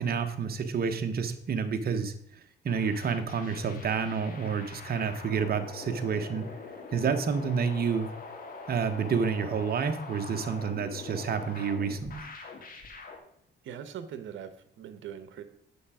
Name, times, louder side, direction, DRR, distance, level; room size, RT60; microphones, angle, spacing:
voice 1, 0.0-2.1 2.6-6.5 6.9-8.1 8.7-12.3, right 6 dB, 50° right, 7 dB, 1.3 m, -29 dB
sound 1, 2.7-13.2, left 3 dB, 45° left, 2.4 m, -44 dB
voice 2, 13.6-15.4, right 8 dB, 75° right, 11 dB, 1.2 m, -41 dB
8.6 x 7.2 x 5.0 m, 0.71 s
cardioid pair, 90°, 20 cm